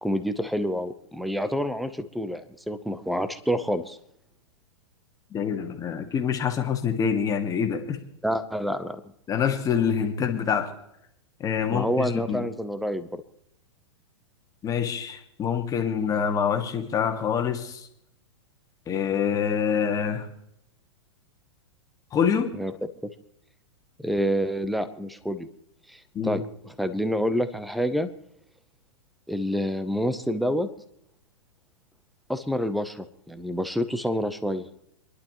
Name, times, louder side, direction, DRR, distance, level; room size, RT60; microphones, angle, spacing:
voice 1, 0.0-4.0 8.2-9.0 11.7-13.2 22.6-22.7 23.0-23.1 24.0-25.5 25.9-26.4 26.8-28.1 29.3-30.7 32.3-34.7, equal, ahead, 0.8 m, -28 dB
voice 2, 5.3-8.0 9.3-10.7 11.4-12.5 14.6-17.9 18.9-20.3 22.1-22.5 26.1-26.4, left 7 dB, 20° left, 1.8 m, -26 dB
28.0 x 11.5 x 3.1 m
hypercardioid pair, 130°, 16 cm